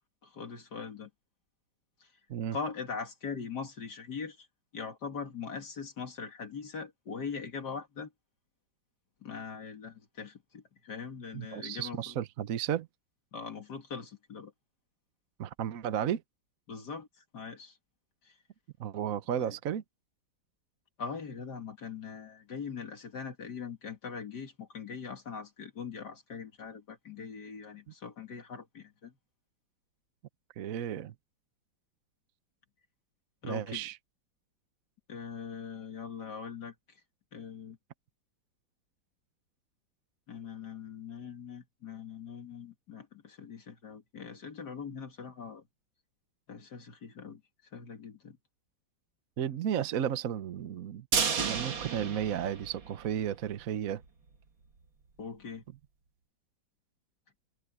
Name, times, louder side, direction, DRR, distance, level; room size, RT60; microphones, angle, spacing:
voice 1, 0.2-1.1 2.5-4.5 4.7-8.1 9.2-12.1 13.3-14.5 16.7-17.1 17.3-17.8 18.3-18.4 19.4-19.5 21.0-29.1 33.4-33.8 35.1-36.7 37.3-37.8 40.3-45.6 46.5-47.4 47.7-48.4 55.2-55.6, left 5 dB, 60° left, 2.5 m, -41 dB
voice 2, 11.3-12.9 15.4-16.2 18.8-19.8 30.6-31.1 33.4-34.0 49.4-51.1 51.4-54.0, right 9 dB, 55° right, 1.1 m, -33 dB
sound 1, 51.1-53.3 53.6-53.7 54.0-54.1, right 6 dB, 80° right, 2.7 m, -32 dB
omnidirectional pair, 2.1 m